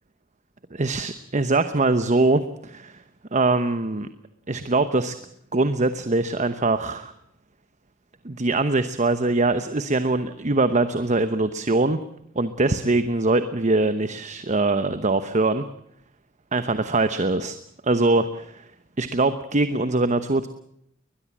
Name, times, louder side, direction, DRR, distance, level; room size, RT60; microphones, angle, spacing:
voice 1, 0.7-3.0 3.3-4.1 4.5-5.2 5.5-7.1 8.2-12.0 12.3-15.6 16.5-17.6 17.8-18.7 19.0-20.5, right 2 dB, 35° right, 11 dB, 1.0 m, -22 dB
21.5 x 21.0 x 7.4 m, 0.72 s
head